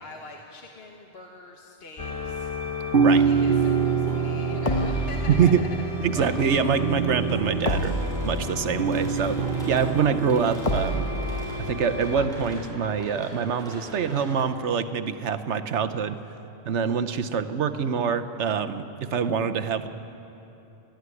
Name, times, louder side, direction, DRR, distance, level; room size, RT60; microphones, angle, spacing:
voice 1, 0.0-2.5 3.2-5.9, left 2 dB, 60° left, 1 dB, 1.5 m, -43 dB
sound 1, 2.0-12.3, left 1 dB, 30° left, 1.3 m, -31 dB
sound 2, 2.9-11.1, right 6 dB, 55° right, 0.9 m, -26 dB
voice 2, 5.3-5.6 6.0-11.1 11.6-16.2 16.6-19.9, right 7 dB, 85° right, 10 dB, 1.2 m, -25 dB
sound 3, 7.6-16.3, left 1 dB, 5° left, 6.3 m, -45 dB
20.5 x 14.5 x 9.7 m, 2.9 s
omnidirectional pair, 1.1 m